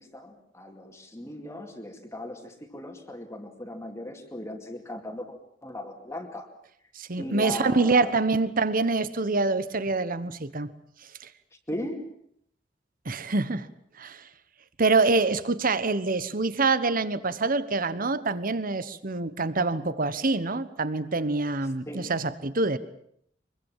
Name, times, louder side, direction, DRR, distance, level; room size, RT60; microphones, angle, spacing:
voice 1, 0.0-5.4 5.6-6.5 7.2-8.1 11.7-12.1 21.9-22.1, left 1 dB, 15° left, 4 dB, 2.4 m, -37 dB
voice 2, 6.9-10.7 11.2-11.3 13.0-13.7 14.0-14.2 14.8-22.8, right 3 dB, 50° right, 15 dB, 1.2 m, -25 dB
24.5 x 23.0 x 7.4 m, 0.68 s
head